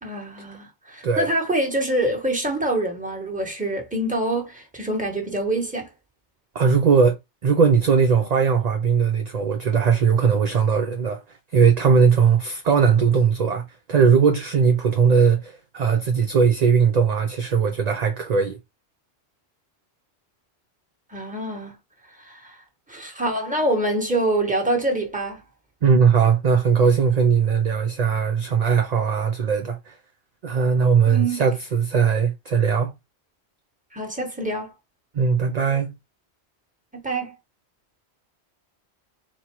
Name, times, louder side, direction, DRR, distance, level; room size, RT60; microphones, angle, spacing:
voice 1, 0.0-5.9 21.1-21.7 22.2-22.6 22.9-25.4 31.1-31.4 33.9-34.7 37.0-37.3, right 1 dB, 5° right, 1.2 m, -25 dB
voice 2, 6.5-7.2 7.4-11.2 11.5-18.6 25.8-29.9 30.4-32.9 35.1-35.9, right 6 dB, 50° right, 0.5 m, -19 dB
4.3 x 2.2 x 4.5 m
omnidirectional pair, 1.1 m